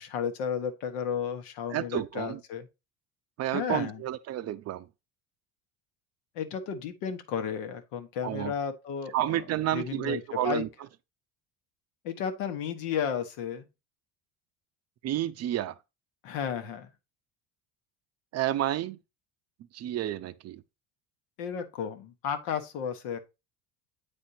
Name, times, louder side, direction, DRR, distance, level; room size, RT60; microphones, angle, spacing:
voice 1, 0.0-2.7 3.5-4.0 6.3-9.4 9.7-10.6 12.0-13.6 16.2-16.9 21.4-23.2, left 7 dB, 85° left, 1.2 m, -33 dB
voice 2, 1.7-2.4 3.4-4.9 8.2-8.5 9.1-10.7 15.0-15.8 18.3-19.0 19.7-20.6, right 13 dB, 40° right, 0.5 m, -30 dB
8.3 x 4.4 x 2.6 m
cardioid pair, 115°, 40 cm